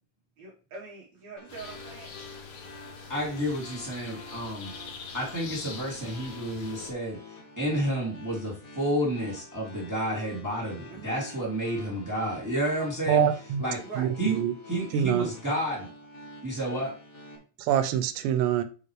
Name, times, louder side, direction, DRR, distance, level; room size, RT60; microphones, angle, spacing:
voice 1, 0.4-2.1 10.9-11.3 13.8-14.1, right 4 dB, 65° right, 1.8 m, -43 dB
sound 1, 1.4-17.4, left 2 dB, 85° left, 0.7 m, -48 dB
sound 2, 1.5-6.9, left 5 dB, 60° left, 2.0 m, -44 dB
voice 2, 3.1-4.7 5.1-7.2 7.6-13.3 13.6-13.8 14.2-14.4 14.7-15.9 16.4-16.9, right 1 dB, 15° right, 0.5 m, -30 dB
voice 3, 13.1-13.6 14.0-14.5 14.9-15.3 17.6-18.6, right 10 dB, 80° right, 2.9 m, -25 dB
8.1 x 5.2 x 3.2 m
omnidirectional pair, 5.0 m